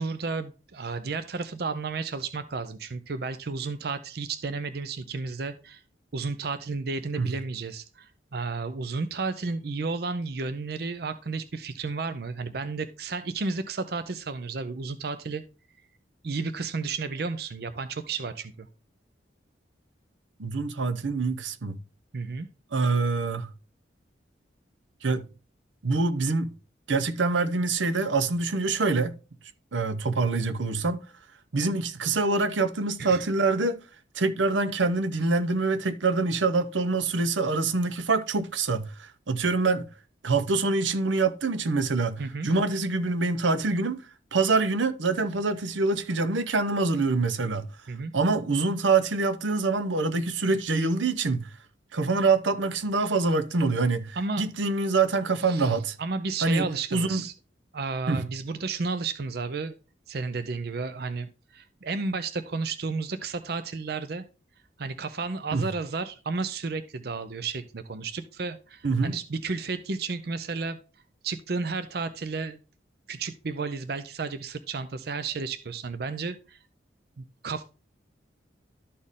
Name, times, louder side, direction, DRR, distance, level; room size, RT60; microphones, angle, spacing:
voice 1, 0.0-5.8 6.1-15.4 16.2-18.7 22.1-22.5 33.0-33.2 42.2-42.5 47.9-48.1 54.2-54.4 55.4-57.3 57.7-59.7 60.1-64.2 64.8-70.8 71.2-72.6 73.1-76.6 77.2-77.7, right 4 dB, 55° right, 0.5 m, -32 dB
voice 2, 20.4-21.8 22.7-23.5 25.0-25.2 25.8-26.6 26.9-29.2 29.7-31.0 31.5-33.8 34.1-39.9 40.2-44.0 44.3-47.7 48.1-51.5 51.9-55.9 56.4-57.2 58.1-58.2 65.5-65.6 68.8-69.2, right 3 dB, 85° right, 0.7 m, -25 dB
13.0 x 4.3 x 3.6 m
head